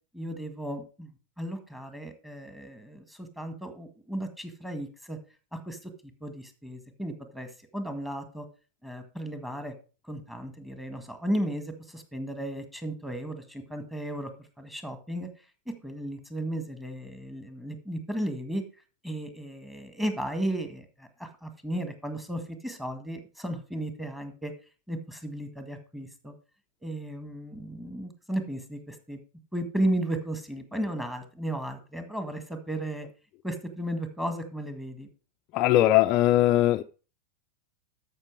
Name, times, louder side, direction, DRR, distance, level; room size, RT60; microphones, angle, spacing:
voice 1, 0.1-1.1 1.4-5.2 5.5-5.9 6.2-8.5 8.8-9.7 10.0-15.3 15.8-18.6 19.0-24.5 24.9-26.3 26.8-29.2 29.5-33.1 33.4-35.1, right 1 dB, 5° right, 1.8 m, -34 dB
voice 2, 35.5-36.8, left 14 dB, 40° left, 0.5 m, -20 dB
13.0 x 5.8 x 4.7 m
figure-of-eight pair, 90°, 0 cm